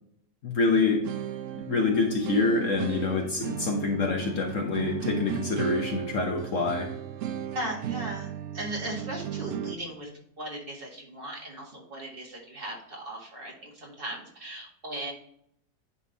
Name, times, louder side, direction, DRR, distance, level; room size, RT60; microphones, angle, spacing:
voice 1, 0.4-1.0 1.5-6.9, left 3 dB, 55° left, 1 dB, 1.2 m, -26 dB
sound 1, 0.7-9.8, right 10 dB, 70° right, 0.7 m, -35 dB
voice 2, 7.5-10.1 10.4-15.1, right 1 dB, 35° right, -1 dB, 1.8 m, -37 dB
9.9 x 3.6 x 4.0 m, 0.70 s
omnidirectional pair, 1.8 m